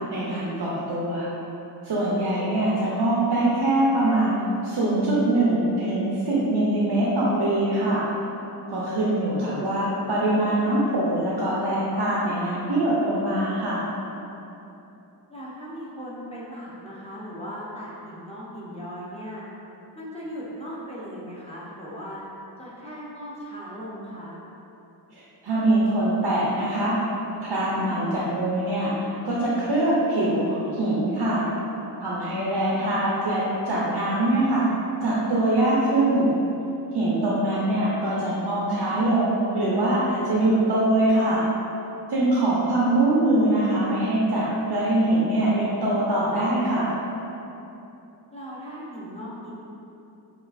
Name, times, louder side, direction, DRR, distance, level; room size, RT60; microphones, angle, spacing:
voice 1, 0.1-1.3 1.8-4.4 4.6-8.1 8.7-13.8 25.1-27.0 27.4-28.9 29.2-31.5 32.0-34.6 35.0-36.3 36.9-41.4 42.1-46.9, right 1 dB, 85° right, -7 dB, 0.6 m, -23 dB
voice 2, 2.4-3.0 9.4-9.7 15.3-19.4 19.9-22.2 22.6-24.4 32.7-33.0 48.3-49.5, equal, 15° left, -8 dB, 0.7 m, -38 dB
5.2 x 2.4 x 2.5 m, 2.9 s
wide cardioid pair, 65°, 41 cm